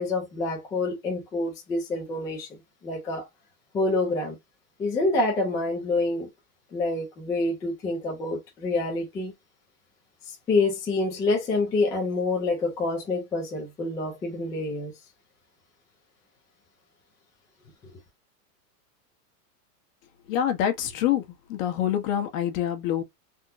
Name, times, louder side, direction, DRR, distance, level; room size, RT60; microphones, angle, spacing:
voice 1, 0.0-3.3 3.7-4.4 4.8-6.3 6.7-9.3 10.3-14.9 17.8-17.9, left 2 dB, 10° left, 0.3 m, -27 dB
voice 2, 20.3-21.2 21.5-23.0, left 10 dB, 55° left, 1.0 m, -26 dB
3.6 x 2.1 x 2.6 m
supercardioid pair, 135°, 47 cm